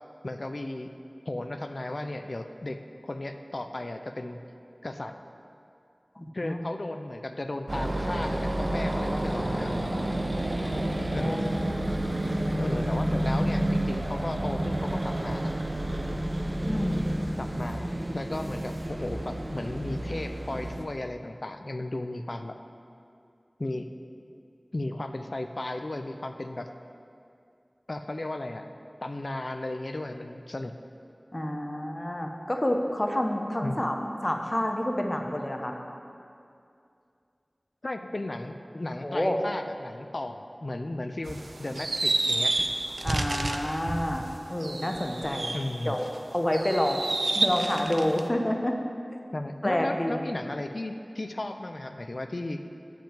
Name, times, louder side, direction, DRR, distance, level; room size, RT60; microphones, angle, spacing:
voice 1, 0.2-0.9 1.3-4.4 4.8-5.1 6.3-9.9 11.1-11.5 12.6-15.5 17.4-22.6 23.6-23.9 24.7-26.7 27.9-28.7 29.0-30.7 33.6-33.8 37.8-42.5 45.5-46.0 49.3-52.6, left 2 dB, 60° left, 7 dB, 0.4 m, -35 dB
voice 2, 6.2-6.6 10.6-11.4 16.6-17.0 31.3-33.9 34.2-35.8 39.0-39.4 43.0-45.5 45.8-46.1 46.3-47.0 47.3-48.7 49.6-50.2, left 1 dB, 30° left, 2 dB, 0.9 m, -28 dB
sound 1, 7.7-20.8, right 1 dB, 50° right, 0.8 m, -30 dB
sound 2, 41.3-46.1 46.5-48.3, right 2 dB, 85° right, 0.4 m, -30 dB
7.6 x 5.3 x 7.3 m, 2.5 s
wide cardioid pair, 50°, 0 cm